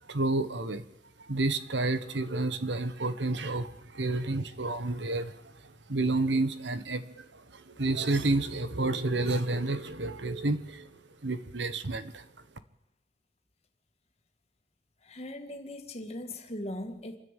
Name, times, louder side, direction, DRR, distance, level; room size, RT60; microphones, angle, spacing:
voice 1, 0.0-0.9 1.2-12.3, right 2 dB, 80° right, 12 dB, 1.4 m, -30 dB
voice 2, 15.0-17.2, left 1 dB, 35° left, 5 dB, 2.2 m, -39 dB
27.0 x 10.5 x 9.2 m, 0.89 s
head